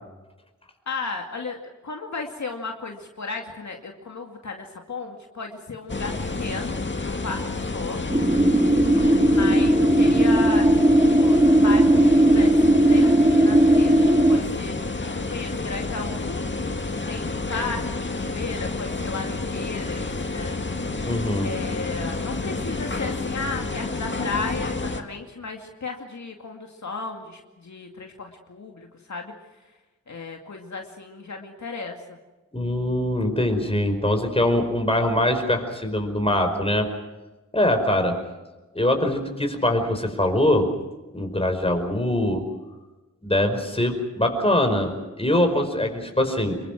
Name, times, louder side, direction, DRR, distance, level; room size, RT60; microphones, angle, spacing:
voice 1, 0.9-8.0 9.3-12.6 12.9-14.7 15.2-16.4 17.1-20.6 21.4-29.3 30.1-32.2 45.3-45.4, left 4 dB, 70° left, 2 dB, 2.4 m, -34 dB
sound 1, 5.9-25.0, left 3 dB, 40° left, 2.1 m, -29 dB
sound 2, 8.1-14.4, right 1 dB, 15° right, 1.6 m, -17 dB
voice 2, 21.0-21.5 32.5-36.9 37.5-38.2 38.8-40.7 41.1-42.4 43.2-46.6, left 1 dB, 20° left, 5 dB, 5.1 m, -23 dB
26.5 x 23.0 x 6.1 m, 1.1 s
wide cardioid pair, 70°, 30 cm